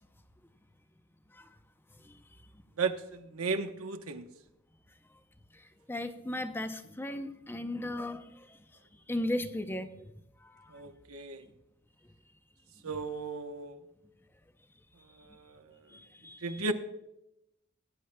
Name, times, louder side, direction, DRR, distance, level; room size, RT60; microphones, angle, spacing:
voice 1, 2.8-4.3 10.7-11.5 12.8-13.8 15.2-15.6 16.4-16.7, right 4 dB, 80° right, 6 dB, 1.0 m, -35 dB
voice 2, 5.5-8.6 9.1-10.1 10.4-10.7 15.9-16.7, left 1 dB, 10° left, 9 dB, 0.6 m, -37 dB
20.5 x 10.0 x 2.2 m, 0.87 s
head